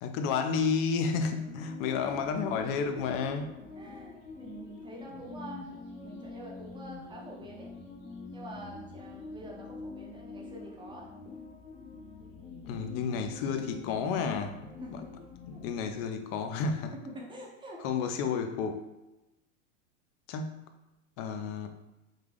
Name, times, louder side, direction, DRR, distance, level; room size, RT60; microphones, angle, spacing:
voice 1, 0.0-3.5 12.7-15.0 15.5-16.9 17.8-18.9 20.3-20.7 21.2-21.7, left 5 dB, 35° left, 7 dB, 0.4 m, -31 dB
sound 1, 1.1-15.9, left 4 dB, 70° left, 1.1 m, -45 dB
voice 2, 1.5-2.1 3.0-5.7 6.0-7.7 8.3-11.1 14.8-15.2 15.5-15.6 17.0-17.8, right 1 dB, 10° right, -2 dB, 0.6 m, -47 dB
3.6 x 2.3 x 3.4 m, 1.0 s
hypercardioid pair, 115°, 39 cm